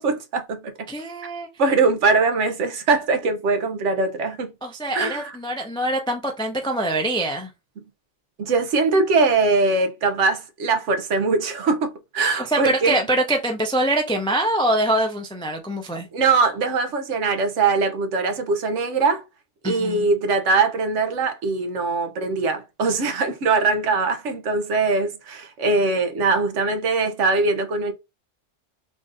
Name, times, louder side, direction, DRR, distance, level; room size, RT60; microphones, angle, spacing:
voice 1, 0.0-0.7 1.6-4.5 4.9-5.4 8.4-13.0 16.1-19.2 19.6-27.9, right 3 dB, 85° right, 1.2 m, -21 dB
voice 2, 0.9-1.5 4.6-7.5 12.5-16.1 19.6-20.0, right 1 dB, 5° left, 0.3 m, -24 dB
3.7 x 2.5 x 3.8 m
omnidirectional pair, 1.2 m